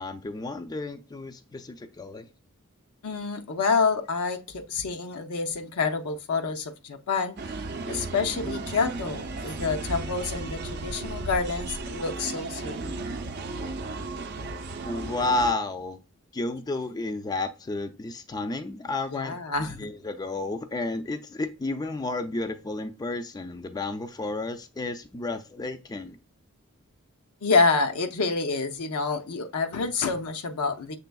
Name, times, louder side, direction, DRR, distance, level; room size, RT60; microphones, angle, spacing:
voice 1, 0.0-2.3 14.8-16.0 16.3-26.2, left 2 dB, 20° left, 0.3 m, -32 dB
voice 2, 3.0-7.4 7.9-13.1 19.1-19.9 27.4-31.0, left 4 dB, 80° left, 0.6 m, -28 dB
sound 1, 7.4-15.5, right 3 dB, 50° right, 0.5 m, -34 dB
6.8 x 3.4 x 2.2 m
head